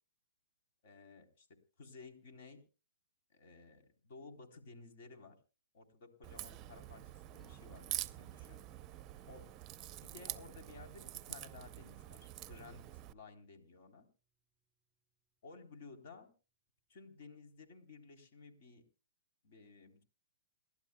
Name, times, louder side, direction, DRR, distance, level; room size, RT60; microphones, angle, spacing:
voice 1, 0.8-1.5 1.8-2.6 3.3-5.4 5.7-8.6 9.3-9.5 10.0-14.1 15.4-16.3 16.9-18.8 19.4-20.0, left 4 dB, 55° left, 4 dB, 3.6 m, -55 dB
Crack, 6.2-13.1, right 14 dB, 25° right, 0.6 m, -46 dB
Acoustic guitar, 14.6-14.7, right 2 dB, ahead, 2.2 m, -74 dB
28.5 x 12.0 x 2.3 m, 0.33 s
hypercardioid pair, 145°, 0 cm